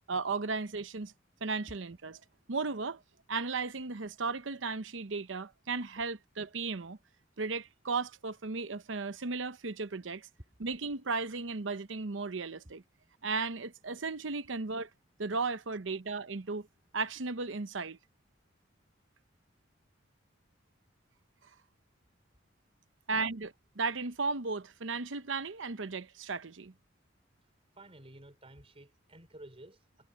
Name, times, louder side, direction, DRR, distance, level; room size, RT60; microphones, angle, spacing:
voice 1, 0.1-1.1 1.4-2.2 2.5-3.0 3.3-7.0 7.4-10.3 10.6-12.8 13.2-14.9 15.2-16.7 16.9-18.0 23.1-23.4 23.8-26.7, right 4 dB, 75° right, 0.9 m, -35 dB
voice 2, 27.8-30.1, right 1 dB, 30° right, 4.0 m, -53 dB
head